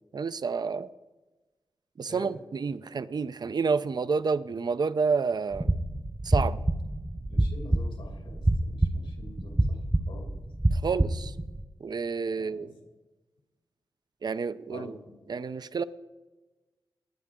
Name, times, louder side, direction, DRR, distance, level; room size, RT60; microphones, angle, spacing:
voice 1, 0.1-0.9 2.0-5.7 6.2-6.6 10.7-11.3 11.8-12.7 14.2-15.0 15.3-15.8, right 5 dB, 50° right, 14 dB, 0.6 m, -29 dB
sound 1, 5.5-11.6, right 1 dB, 15° right, 0.9 m, -27 dB
voice 2, 7.3-9.8 10.1-10.4 12.3-12.7 14.7-15.1, left 2 dB, 85° left, 3 dB, 2.6 m, -46 dB
19.0 x 9.5 x 3.7 m, 1.2 s
cardioid pair, 65°, 9 cm